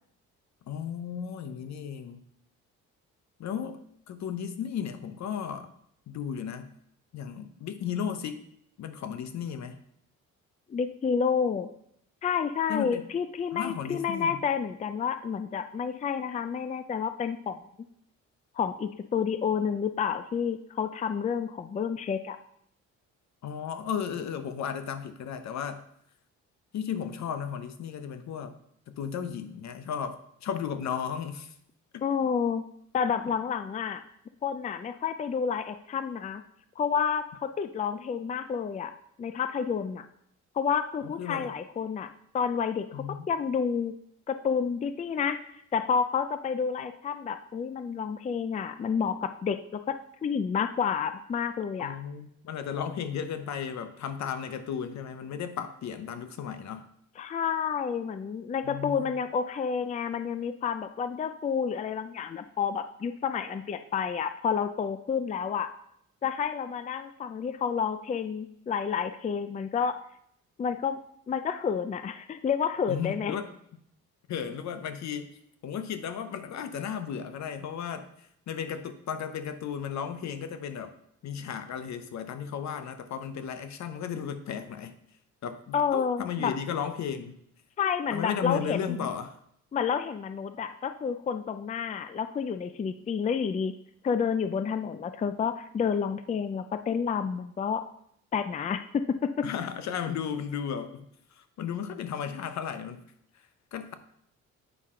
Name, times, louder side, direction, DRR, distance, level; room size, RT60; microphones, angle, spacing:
voice 1, 0.7-2.2 3.4-5.7 6.1-6.7 7.1-8.4 8.8-9.8 12.7-13.0 13.5-14.4 23.4-25.8 26.7-28.6 28.9-31.5 31.9-32.1 41.0-41.5 42.9-43.3 51.8-56.9 58.6-59.1 72.9-73.5 74.3-75.3 75.6-78.1 78.5-80.9 81.2-85.0 85.4-87.4 88.1-89.4 99.4-101.1 101.4-103.0 103.7-103.9, left 7 dB, 65° left, 10 dB, 0.8 m, -34 dB
voice 2, 10.7-11.7 12.2-17.6 18.6-22.4 32.0-32.6 32.9-34.0 34.4-36.4 36.8-38.9 39.2-40.1 40.5-43.9 44.3-45.4 45.7-50.0 50.2-52.0 57.2-65.7 66.2-70.0 70.6-71.0 71.3-73.4 85.7-86.5 87.8-89.1 89.7-93.7 94.0-97.8 98.3-99.5, left 6 dB, 25° left, 10 dB, 0.4 m, -29 dB
8.1 x 5.5 x 3.7 m, 0.71 s
cardioid pair, 90°, 30 cm